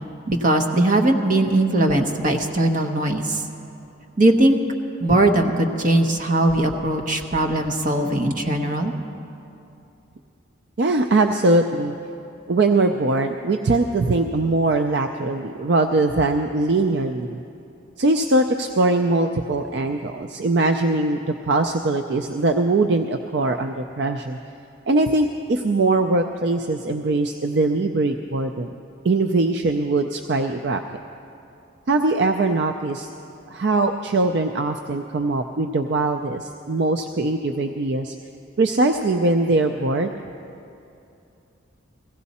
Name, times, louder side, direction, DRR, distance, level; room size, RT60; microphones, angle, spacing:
voice 1, 0.3-3.4 4.2-4.6 5.0-8.9, right 1 dB, 40° right, 3 dB, 1.0 m, -20 dB
voice 2, 10.8-11.9 12.5-17.4 18.0-24.4 24.9-28.7 29.0-30.8 31.9-33.1 33.5-38.1 38.6-40.2, right 2 dB, 55° right, 6 dB, 0.4 m, -21 dB
16.0 x 16.0 x 4.2 m, 2.7 s
head